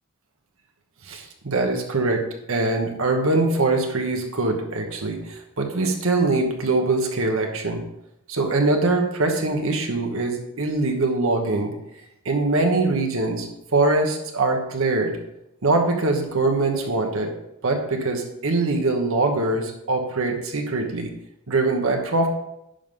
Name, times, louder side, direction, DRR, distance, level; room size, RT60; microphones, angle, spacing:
voice 1, 1.0-7.8 8.3-11.7 12.2-15.2 15.6-17.3 17.6-21.1 21.5-22.3, right 2 dB, 65° right, 3 dB, 1.1 m, -23 dB
10.0 x 5.5 x 3.7 m, 0.83 s
head